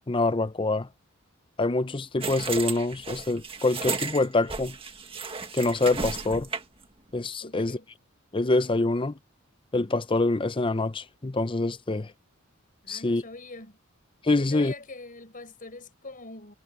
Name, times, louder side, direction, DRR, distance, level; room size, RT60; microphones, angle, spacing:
voice 1, 0.1-0.9 1.6-4.8 5.5-6.5 7.1-7.8 8.3-9.2 9.7-12.1 12.9-13.2 14.2-14.7, left 2 dB, 25° left, 0.6 m, -25 dB
sound 1, 2.2-6.8, right 4 dB, 25° right, 1.8 m, -34 dB
voice 2, 7.4-7.9 12.8-13.8 14.4-16.5, left 3 dB, 40° left, 5.5 m, -43 dB
head